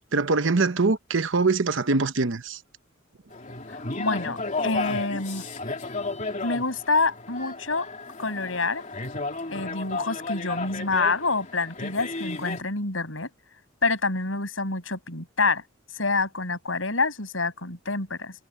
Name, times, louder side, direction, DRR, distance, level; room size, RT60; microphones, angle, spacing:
voice 1, 0.1-2.6, right 3 dB, 70° right, 1.0 m, -23 dB
sound 1, 3.3-12.6, left 3 dB, 40° left, 2.9 m, -33 dB
voice 2, 4.0-5.5 6.4-7.9 8.2-8.8 9.5-13.3 13.8-15.6 15.9-18.3, left 3 dB, 80° left, 6.7 m, -27 dB
head